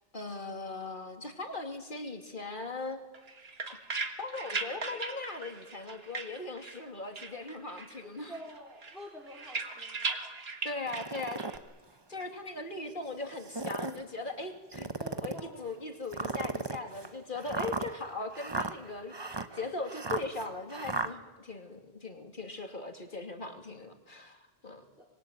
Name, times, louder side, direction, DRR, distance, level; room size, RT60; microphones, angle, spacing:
voice 1, 0.1-3.0 3.7-3.8 4.2-8.3 10.6-11.4 12.1-14.9 15.2-24.8, left 3 dB, 50° left, 4 dB, 2.8 m, -39 dB
sound 1, 3.1-6.9 7.2-8.0 8.3-11.6, right 4 dB, 70° right, 2.0 m, -38 dB
voice 2, 8.3-10.1 10.8-11.0 15.0-15.6 25.0-25.1, equal, ahead, -3 dB, 4.0 m, -48 dB
sound 2, 10.9-11.6 12.2-12.3 13.3-14.0 14.7-15.5 16.1-21.1, right 3 dB, 25° right, 1.0 m, -36 dB
25.5 x 21.5 x 9.1 m, 1.2 s
omnidirectional pair, 1.1 m